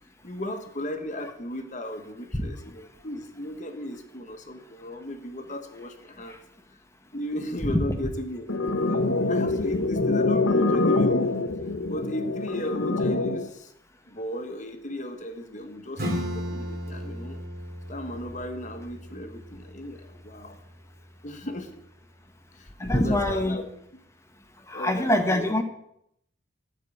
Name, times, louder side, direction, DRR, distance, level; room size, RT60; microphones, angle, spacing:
voice 1, 0.2-6.4 7.1-11.3 11.9-13.7 14.1-17.4 17.9-20.6 21.2-21.8 22.5-23.7 24.7-25.5, left 1 dB, 35° left, 6 dB, 1.3 m, -36 dB
sound 1, 8.5-13.5, left 2 dB, 75° left, 1.0 m, -25 dB
Acoustic guitar / Strum, 16.0-21.2, equal, 45° right, 2.7 m, -36 dB
voice 2, 22.8-23.6 24.7-25.6, left 1 dB, 15° left, 6 dB, 1.1 m, -24 dB
13.0 x 4.8 x 8.4 m, 0.76 s
head